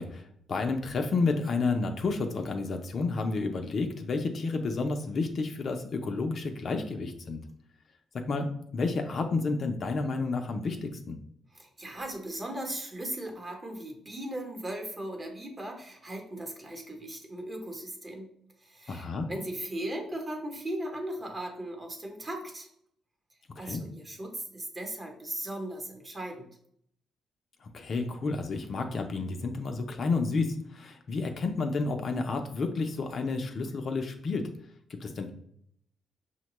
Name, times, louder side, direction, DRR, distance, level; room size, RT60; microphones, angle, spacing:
voice 1, 0.0-7.4 8.3-11.2 18.9-19.3 23.6-23.8 27.6-34.5 34.9-35.3, left 3 dB, 50° left, 5 dB, 0.4 m, -31 dB
voice 2, 11.5-18.3 18.6-22.7 23.6-26.5, right 1 dB, 25° right, 2 dB, 0.9 m, -38 dB
5.6 x 2.1 x 3.0 m, 0.68 s
cardioid pair, 90°, 0 cm